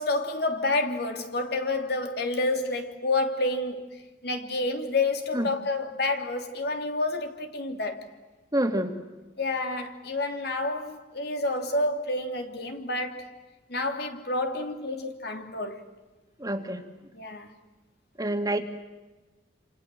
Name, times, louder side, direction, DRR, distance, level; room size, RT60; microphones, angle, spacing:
voice 1, 0.0-3.9 4.2-8.1 9.4-13.3 13.7-15.8 17.1-17.5, left 2 dB, 65° left, 3.1 m, -29 dB
voice 2, 8.5-8.9 16.4-16.8 18.2-18.6, right 1 dB, 20° right, 2.4 m, -27 dB
28.0 x 28.0 x 7.7 m
head